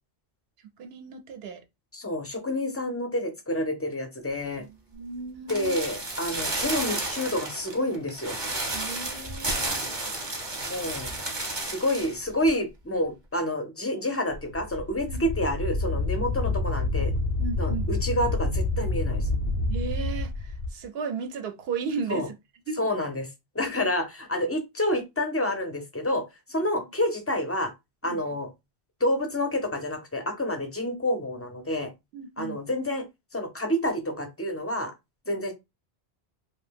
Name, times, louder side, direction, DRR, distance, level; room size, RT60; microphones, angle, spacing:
voice 1, 0.8-1.6 4.6-5.8 8.7-10.0 15.1-15.2 17.4-17.9 19.7-22.3 22.7-22.8 26.6-26.7 28.0-28.2 32.1-32.6, right 5 dB, 75° right, 0.8 m, -35 dB
voice 2, 1.9-4.6 5.5-8.4 10.7-11.1 11.6-17.1 17.6-19.3 22.1-22.3 22.8-23.3 23.5-26.2 26.5-27.7 28.0-28.5 29.0-31.9 32.4-33.1 33.3-34.9 35.3-35.5, left 1 dB, 25° left, 0.3 m, -28 dB
sound 1, 5.5-12.2 12.4-12.5, right 2 dB, 30° right, 0.6 m, -32 dB
Wind, 14.3-20.7, left 2 dB, 75° left, 0.8 m, -28 dB
2.7 x 2.2 x 3.3 m
omnidirectional pair, 1.1 m